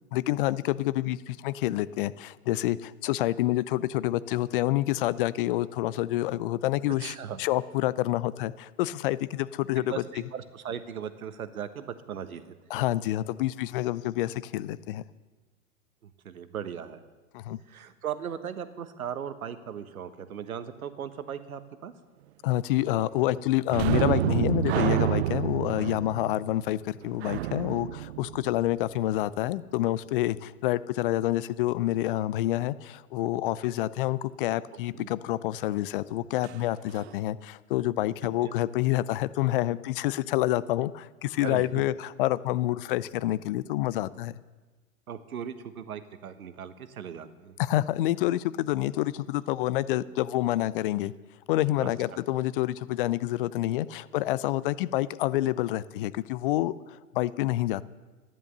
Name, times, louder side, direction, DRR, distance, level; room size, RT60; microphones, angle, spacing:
voice 1, 0.1-10.0 12.7-15.0 17.3-17.6 22.4-44.3 47.6-51.1 51.5-57.8, left 15 dB, 40° left, 18 dB, 0.5 m, -28 dB
voice 2, 7.0-7.4 9.8-12.8 16.0-17.0 17.7-21.9 34.9-35.1 38.4-38.6 41.4-41.7 45.1-47.5 51.8-52.2, right 8 dB, 75° right, 11 dB, 1.3 m, -38 dB
sound 1, 23.7-29.1 36.4-36.6 36.9-37.1, right 14 dB, 50° right, 0.5 m, -29 dB
13.5 x 10.5 x 6.7 m, 1.3 s
hypercardioid pair, 110°, 43 cm